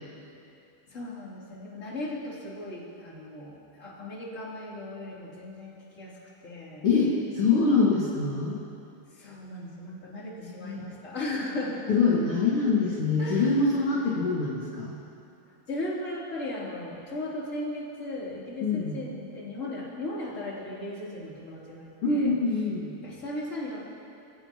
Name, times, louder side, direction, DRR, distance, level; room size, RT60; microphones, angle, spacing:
voice 1, 0.9-6.8 9.1-11.9 13.2-13.8 15.5-22.3 23.0-23.8, left 1 dB, 20° left, -6 dB, 2.9 m, -37 dB
voice 2, 6.8-8.6 10.4-10.8 11.9-14.9 18.6-18.9 22.0-22.9, left 4 dB, 45° left, -6 dB, 2.0 m, -24 dB
28.5 x 16.5 x 3.0 m, 2.6 s
omnidirectional pair, 5.3 m